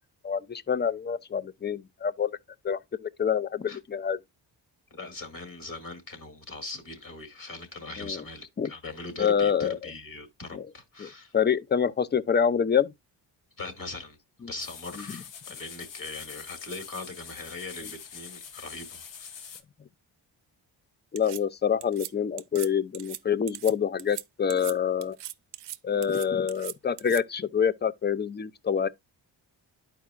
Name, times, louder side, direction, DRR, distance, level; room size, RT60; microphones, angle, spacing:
voice 1, 0.2-2.3 2.6-4.2 8.0-8.2 8.6-8.7 9.2-9.8 10.5-10.7 11.0-12.9 14.4-14.5 21.1-25.2 25.8-28.9, left 7 dB, 25° left, 0.5 m, -26 dB
voice 2, 4.9-11.3 13.6-19.5, left 3 dB, 50° left, 2.1 m, -40 dB
sound 1, 14.6-19.6, left 7 dB, 80° left, 1.0 m, -44 dB
sound 2, 21.2-21.4 21.8-22.1 22.4-22.7 22.9-23.2 23.5-23.7 24.0-24.2 24.5-24.7 25.0-25.8 26.0-27.2, right 13 dB, 65° right, 0.5 m, -39 dB
11.0 x 4.7 x 2.3 m
cardioid pair, 65°, 44 cm